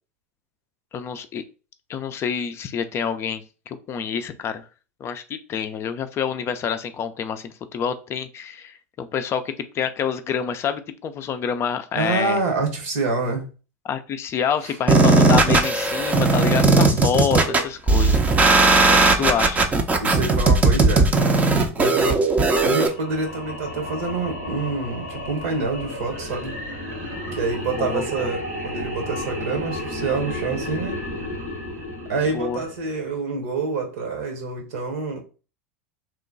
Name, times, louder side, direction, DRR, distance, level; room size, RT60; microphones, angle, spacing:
voice 1, 0.9-1.4 1.9-4.7 5.0-12.4 13.8-18.5 18.9-19.7 27.8-28.3 32.3-32.6, left 7 dB, 35° left, 0.4 m, -27 dB
voice 2, 11.9-13.5 14.6-14.7 19.0-19.3 20.0-21.1 21.7-22.2 22.6-26.6 27.3-31.0 32.1-35.2, right 3 dB, 75° right, 1.2 m, -27 dB
sound 1, 14.9-22.9, right 3 dB, 20° right, 0.5 m, -17 dB
sound 2, 22.7-33.1, left 1 dB, 90° right, 1.7 m, -33 dB
3.1 x 2.2 x 3.8 m
hypercardioid pair, 95°, 8 cm